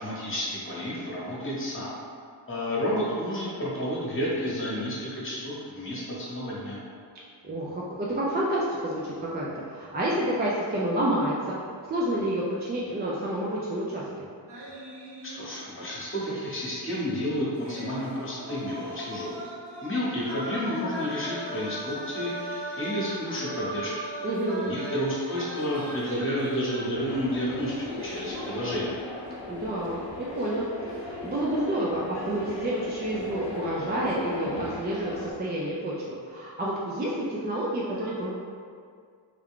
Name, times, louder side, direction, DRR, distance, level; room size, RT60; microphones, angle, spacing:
voice 1, 0.0-1.9 2.5-6.8 15.3-19.4 19.8-24.1 24.6-27.7 28.0-28.9, equal, 30° left, -7 dB, 1.1 m, -31 dB
voice 2, 7.4-11.6 11.9-14.0 24.2-24.7 29.5-38.3, right 1 dB, 25° right, -6 dB, 0.4 m, -29 dB
sound 1, 14.5-15.9 16.2-16.3 17.6-29.0 29.3-29.6, right 1 dB, 65° right, 0.8 m, -39 dB
sound 2, 26.9-35.3, left 2 dB, 85° left, 0.6 m, -38 dB
3.5 x 2.2 x 3.6 m, 2.2 s
cardioid pair, 90°, 44 cm